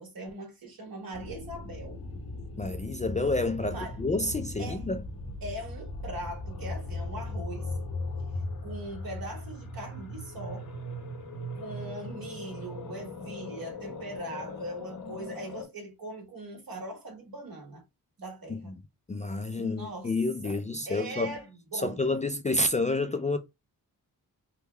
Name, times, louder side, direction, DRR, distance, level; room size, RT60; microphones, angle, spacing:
voice 1, 0.0-2.0 3.7-4.0 4.6-4.8 5.4-7.7 8.6-10.7 11.5-17.8 18.2-18.7 19.6-20.1 20.4-20.6 20.9-22.0, right 1 dB, 65° right, 1.6 m, -40 dB
sound 1, 1.1-15.7, left 2 dB, 90° left, 1.1 m, -38 dB
voice 2, 2.6-5.0 18.5-18.6 19.1-21.3 21.7-23.4, left 2 dB, 20° left, 0.3 m, -29 dB
3.4 x 2.2 x 3.2 m
cardioid pair, 70°, 37 cm